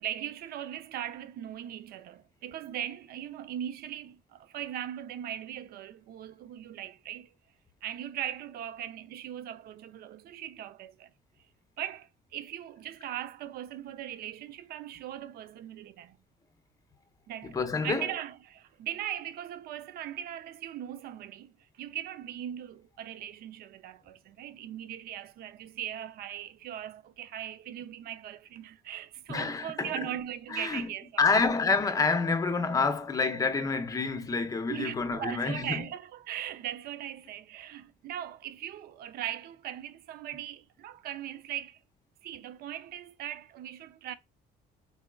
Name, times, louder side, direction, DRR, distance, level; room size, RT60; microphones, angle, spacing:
voice 1, 0.0-7.3 7.8-11.1 11.8-16.2 17.3-17.6 17.8-31.4 34.7-41.8 42.2-44.1, right 11 dB, 65° right, 0.5 m, -39 dB
voice 2, 17.5-18.1 29.3-30.1 30.5-30.9 31.2-35.8, left 4 dB, 20° left, 0.7 m, -28 dB
4.0 x 3.6 x 2.2 m
cardioid pair, 110°, 17 cm